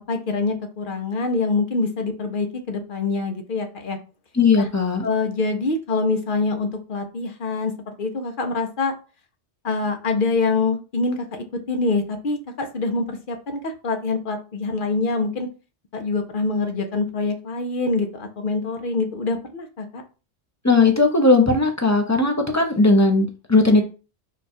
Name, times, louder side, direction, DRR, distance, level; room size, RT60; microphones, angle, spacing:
voice 1, 0.1-4.0 4.6-4.7 5.0-8.9 9.6-15.5 15.9-20.0, left 3 dB, 55° left, 5 dB, 0.8 m, -25 dB
voice 2, 4.3-5.0 20.6-23.8, left 3 dB, 20° left, 3 dB, 0.6 m, -17 dB
4.8 x 2.3 x 4.3 m, 0.34 s
omnidirectional pair, 1.1 m